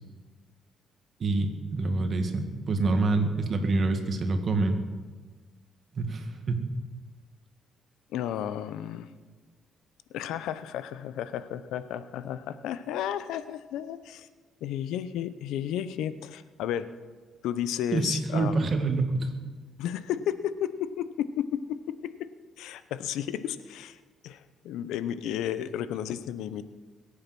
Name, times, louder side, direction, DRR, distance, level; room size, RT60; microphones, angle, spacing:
voice 1, 1.2-4.8 5.9-6.6 17.9-19.3, right 3 dB, 50° right, 6 dB, 2.1 m, -26 dB
voice 2, 8.1-9.1 10.1-14.3 14.6-16.9 17.4-18.7 19.8-22.1 22.6-24.0 24.2-26.6, left 10 dB, 90° left, 13 dB, 0.7 m, -33 dB
21.5 x 8.7 x 6.1 m, 1.4 s
cardioid pair, 90°, 0 cm